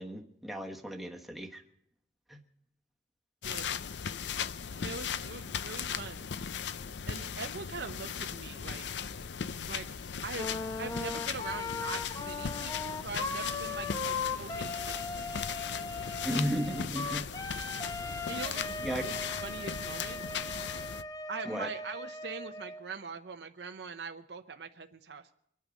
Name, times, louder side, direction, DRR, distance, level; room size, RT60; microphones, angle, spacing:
voice 1, 0.0-1.6 2.3-2.4 16.2-17.2 18.8-19.0 21.5-21.7, equal, ahead, 1 dB, 1.2 m, -34 dB
sound 1, 3.4-21.0, left 7 dB, 75° left, 0.5 m, -38 dB
voice 2, 3.4-3.8 4.8-6.3 7.1-8.9 9.7-9.9 10.2-10.5 10.8-15.5 18.3-20.2 21.3-25.3, right 4 dB, 65° right, 7 dB, 0.7 m, -42 dB
Wind instrument woodwind instrument, 10.3-22.8, left 3 dB, 20° left, 1.0 m, -38 dB
24.5 x 9.1 x 5.2 m, 0.72 s
head